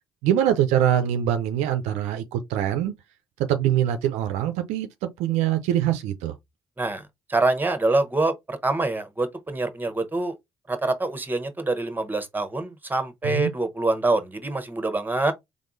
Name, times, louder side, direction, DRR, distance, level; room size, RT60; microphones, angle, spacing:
voice 1, 0.2-2.9 3.5-6.3 13.2-13.5, right 11 dB, 75° right, 0.5 m, -23 dB
voice 2, 7.3-10.3 10.7-15.3, right 2 dB, 15° right, 1.0 m, -25 dB
3.6 x 3.5 x 2.5 m
hypercardioid pair, 40°, 12 cm